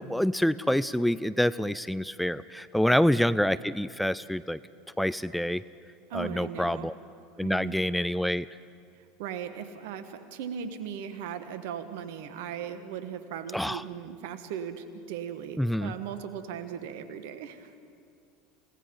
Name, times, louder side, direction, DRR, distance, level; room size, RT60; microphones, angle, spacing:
voice 1, 0.0-4.6 5.0-5.6 6.1-6.9 7.4-8.5 13.5-13.8 15.6-15.9, equal, ahead, 16 dB, 0.4 m, -27 dB
voice 2, 6.1-6.9 7.4-7.9 9.2-17.8, right 8 dB, 65° right, 10 dB, 1.5 m, -38 dB
29.0 x 18.0 x 5.4 m, 2.3 s
hypercardioid pair, 80°, 0 cm